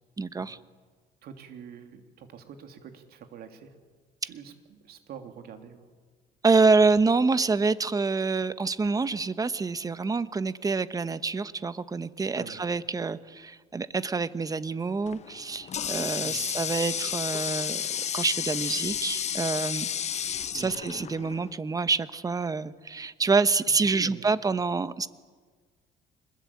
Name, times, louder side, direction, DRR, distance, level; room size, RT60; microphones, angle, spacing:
voice 1, 0.2-0.6 6.4-17.9 18.1-25.1, right 4 dB, 20° right, 14 dB, 1.0 m, -27 dB
voice 2, 1.2-3.7 4.2-5.8 12.3-12.6 16.1-16.5 20.5-20.8 23.7-24.3, right 7 dB, 65° right, 6 dB, 3.1 m, -45 dB
Water tap faucet, 15.1-21.5, left 8 dB, 40° left, 0.9 m, -32 dB
25.5 x 21.0 x 8.6 m, 1.5 s
cardioid pair, 110°, 17 cm